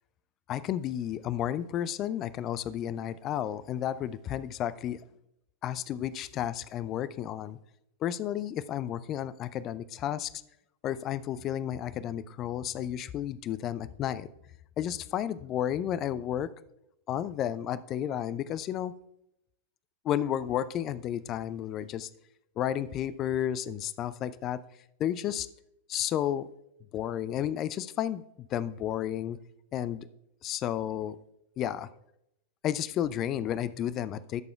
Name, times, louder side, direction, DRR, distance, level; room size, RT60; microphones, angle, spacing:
voice 1, 0.5-5.0 5.6-7.6 8.0-10.3 10.8-14.3 14.8-16.5 17.1-18.9 20.0-22.1 22.6-24.6 25.0-25.5 25.9-26.5 26.9-29.4 29.7-30.1 30.4-31.2 31.6-31.9 32.6-34.4, left 11 dB, 35° left, 17 dB, 0.4 m, -32 dB
19.0 x 6.9 x 2.3 m, 0.81 s
figure-of-eight pair, 90°, 0 cm